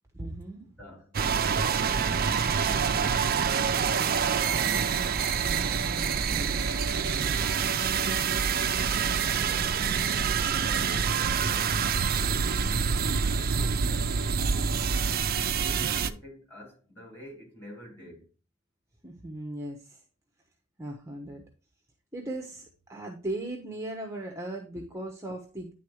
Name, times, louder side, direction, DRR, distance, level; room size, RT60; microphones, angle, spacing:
voice 1, 0.1-0.6 5.8-7.4 12.4-12.8 19.0-20.0 20.8-21.4 22.1-25.7, right 1 dB, 15° right, 1.0 m, -38 dB
voice 2, 0.8-1.1 7.8-8.3 10.5-12.0 12.5-13.0 13.2-14.8 15.4-18.3 24.7-24.8, equal, 10° left, 4.5 m, -48 dB
sound 1, 1.1-16.1, right 6 dB, 45° right, 0.5 m, -26 dB
10.5 x 3.9 x 4.8 m
head